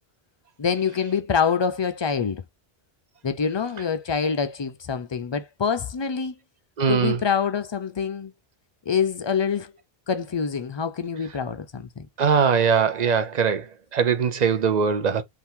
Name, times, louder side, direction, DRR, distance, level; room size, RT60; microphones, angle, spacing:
voice 1, 0.6-2.4 3.2-6.4 6.9-8.3 8.9-9.7 10.1-12.1, left 6 dB, 45° left, 0.3 m, -25 dB
voice 2, 6.8-7.2 12.2-13.7 13.9-15.2, right 6 dB, 45° right, 0.7 m, -21 dB
3.6 x 2.6 x 4.4 m
omnidirectional pair, 1.0 m